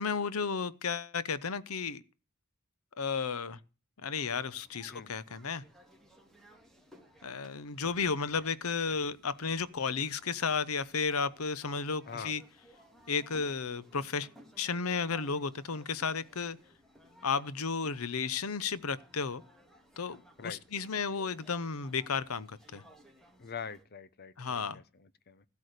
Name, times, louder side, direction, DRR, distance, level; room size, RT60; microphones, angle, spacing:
voice 1, 0.0-2.0 3.0-3.6 4.0-5.6 7.2-12.4 13.1-14.3 14.6-16.6 17.2-19.4 20.0-22.8 24.4-24.8, left 5 dB, 90° left, 0.9 m, -33 dB
sound 1, 4.2-23.8, equal, ahead, 2.5 m, -60 dB
voice 2, 23.4-25.5, left 6 dB, 50° left, 0.9 m, -44 dB
15.5 x 8.4 x 6.6 m
head